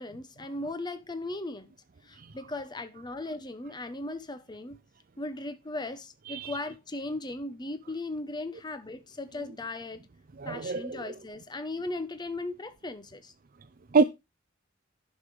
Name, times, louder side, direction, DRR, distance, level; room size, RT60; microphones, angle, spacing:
voice 1, 0.0-1.7 2.0-4.8 5.2-10.0 10.4-13.3, left 2 dB, 20° left, 0.9 m, -37 dB
voice 2, 10.4-11.0 13.9-14.0, right 4 dB, 45° right, 0.5 m, -25 dB
10.5 x 6.6 x 4.8 m
head